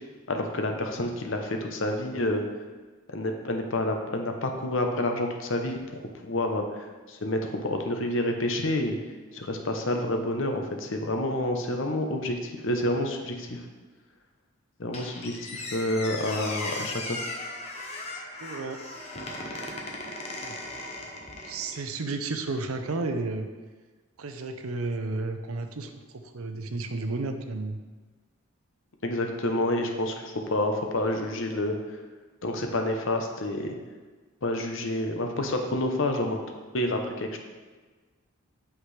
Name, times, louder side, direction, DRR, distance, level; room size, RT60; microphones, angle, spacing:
voice 1, 0.3-2.4 3.1-9.0 9.3-13.6 14.8-17.2 29.0-31.7 32.4-33.8 34.4-36.4 36.7-37.4, left 1 dB, 65° left, 4 dB, 0.8 m, -28 dB
Squeak, 14.9-21.8, left 2 dB, 30° left, 0.9 m, -37 dB
voice 2, 18.4-18.8 20.4-20.5 21.4-23.5 24.2-27.8, right 3 dB, 85° right, 6 dB, 0.7 m, -32 dB
8.1 x 5.9 x 3.3 m, 1.3 s
head